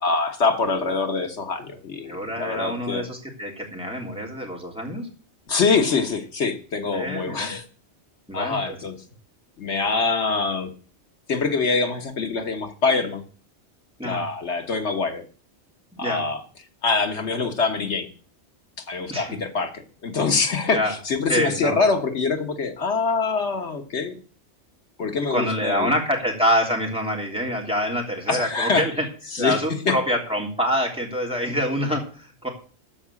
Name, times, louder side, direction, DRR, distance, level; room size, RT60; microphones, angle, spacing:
voice 1, 0.0-3.0 5.5-7.6 8.3-9.0 9.6-10.7 11.3-13.2 14.0-15.2 16.0-16.4 16.8-18.1 18.9-24.2 25.0-25.9 28.3-28.8 29.3-30.0, left 4 dB, 80° left, 6 dB, 1.7 m, -24 dB
voice 2, 2.1-5.1 6.9-7.5 8.3-8.8 14.0-14.2 16.0-16.2 19.1-19.3 20.7-20.9 21.3-21.8 25.3-29.0 29.4-32.5, equal, 5° right, -1 dB, 3.1 m, -26 dB
13.5 x 4.9 x 8.4 m, 0.40 s
omnidirectional pair, 1.2 m